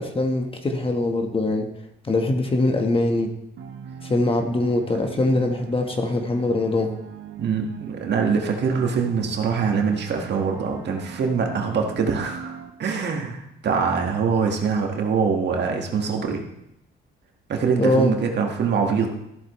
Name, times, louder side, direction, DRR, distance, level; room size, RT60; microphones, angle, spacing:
voice 1, 0.0-1.7 2.0-3.3 4.0-6.9 17.8-18.1, left 2 dB, 25° left, 4 dB, 1.4 m, -22 dB
sound 1, 3.6-12.7, right 7 dB, 75° right, 1.0 m, -40 dB
voice 2, 7.4-16.5 17.5-19.1, right 5 dB, 60° right, 2 dB, 1.8 m, -24 dB
14.0 x 8.0 x 3.2 m, 0.83 s
cardioid pair, 90°, 20 cm